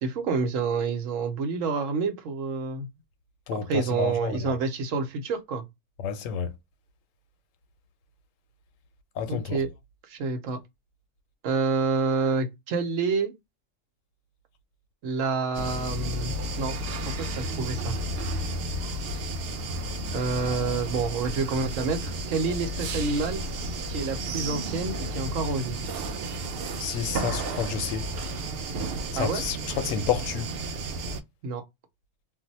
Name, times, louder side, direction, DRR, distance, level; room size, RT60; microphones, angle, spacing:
voice 1, 0.0-2.9 3.5-5.6 9.3-9.7 10.1-10.6 11.4-13.3 15.0-16.7 17.0-18.0 20.1-23.4 23.9-25.8 29.2-29.4 31.4-31.6, right 4 dB, 80° right, 1.1 m, -28 dB
voice 2, 3.5-4.5 6.0-6.5 9.2-9.6 26.8-28.1 29.1-30.5, left 7 dB, 85° left, 1.0 m, -30 dB
sound 1, 15.5-31.2, right 1 dB, 65° right, 0.6 m, -32 dB
2.6 x 2.0 x 4.0 m
omnidirectional pair, 1.3 m